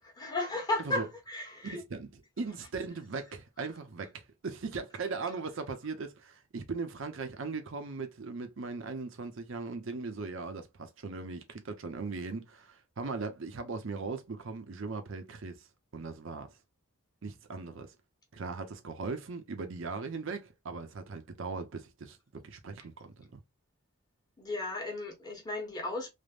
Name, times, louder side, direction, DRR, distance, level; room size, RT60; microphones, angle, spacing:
voice 1, 0.2-1.8 24.4-26.1, left 2 dB, 20° left, 1.0 m, -34 dB
voice 2, 1.6-15.7 15.9-16.6 17.2-17.9 18.3-22.2 22.4-23.4, right 4 dB, 65° right, 0.6 m, -39 dB
3.3 x 2.0 x 2.4 m
head